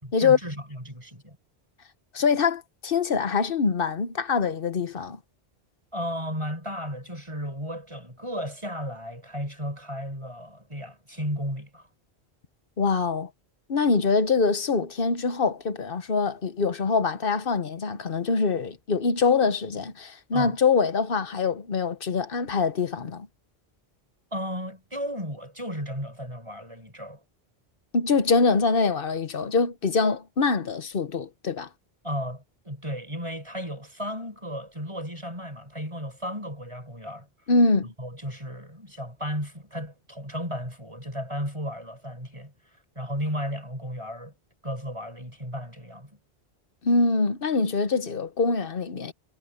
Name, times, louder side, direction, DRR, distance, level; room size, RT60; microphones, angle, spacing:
voice 1, 0.0-1.4 5.9-11.9 20.3-20.5 24.3-27.2 32.0-37.3 38.0-42.5 43.0-44.3 44.6-46.2, equal, 30° right, 6.1 m, -34 dB
voice 2, 2.1-5.2 12.8-13.3 13.7-23.3 27.9-31.7 37.5-37.9 46.8-49.1, left 4 dB, 60° left, 1.3 m, -24 dB
omnidirectional pair, 1.1 m